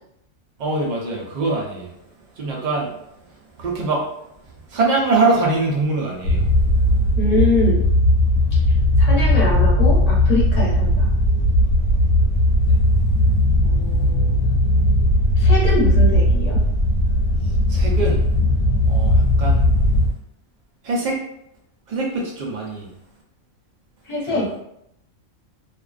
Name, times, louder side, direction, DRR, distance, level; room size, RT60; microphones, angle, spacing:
voice 1, 0.6-1.9 2.3-3.0 3.3-4.1 4.7-6.5 12.7-12.8 17.4-18.2 18.9-19.7 20.8-21.2 21.9-22.9 24.2-24.5, right 3 dB, 70° right, -2 dB, 0.4 m, -23 dB
sound 1, 6.2-20.1, left 1 dB, 70° left, 0.8 m, -17 dB
voice 2, 7.2-7.8 9.0-11.1 13.6-14.4 15.4-16.6 24.0-24.5, left 2 dB, 35° left, -6 dB, 0.8 m, -23 dB
2.4 x 2.2 x 2.3 m, 0.77 s
omnidirectional pair, 1.4 m